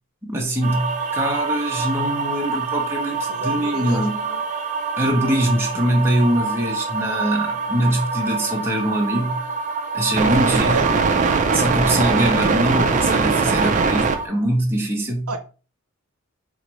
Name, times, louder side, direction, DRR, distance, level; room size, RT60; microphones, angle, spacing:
voice 1, 0.2-4.2 5.0-9.4 9.9-10.9 11.5-15.3, right 1 dB, 10° right, 0.7 m, -23 dB
sound 1, 0.6-14.3, right 4 dB, 35° right, 0.4 m, -23 dB
voice 2, 3.3-4.4 10.3-10.9 15.3-15.4, right 3 dB, 80° right, 0.6 m, -30 dB
4.2 x 2.6 x 3.1 m
head